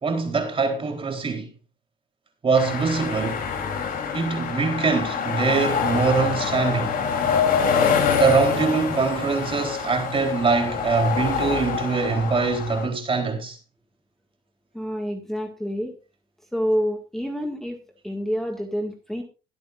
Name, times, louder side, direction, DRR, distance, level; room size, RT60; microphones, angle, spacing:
voice 1, 0.0-1.5 2.4-3.4 4.1-7.0 8.2-13.6, right 4 dB, 30° right, 3.9 m, -23 dB
sound 1, 2.5-12.9, left 6 dB, 55° left, 3.7 m, -25 dB
voice 2, 14.7-16.0 16.5-19.2, equal, ahead, 2.0 m, -28 dB
21.5 x 8.7 x 2.6 m
cardioid pair, 110°, 17 cm